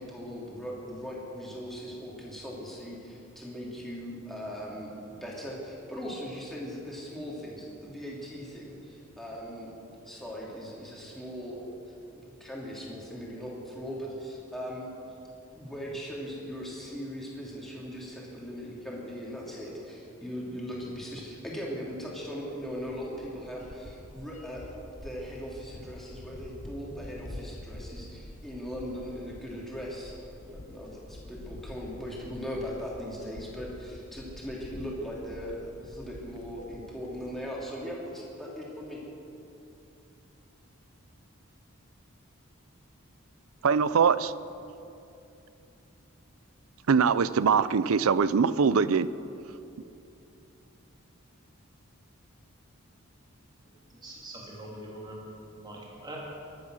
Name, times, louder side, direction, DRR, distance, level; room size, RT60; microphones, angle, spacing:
voice 1, 0.0-14.9 15.5-24.8 25.0-30.2 30.5-39.0, equal, ahead, -5 dB, 3.0 m, -39 dB
sound 1, 20.0-20.1 20.8-20.9 21.2-21.3 21.5-37.6, left 1 dB, 35° left, 0.7 m, -47 dB
voice 2, 43.6-44.3 46.9-49.1, right 6 dB, 80° right, 16 dB, 0.5 m, -22 dB
voice 3, 53.6-55.2 55.6-56.2, right 1 dB, 20° right, -4 dB, 2.9 m, -43 dB
22.5 x 9.4 x 6.4 m, 2.8 s
head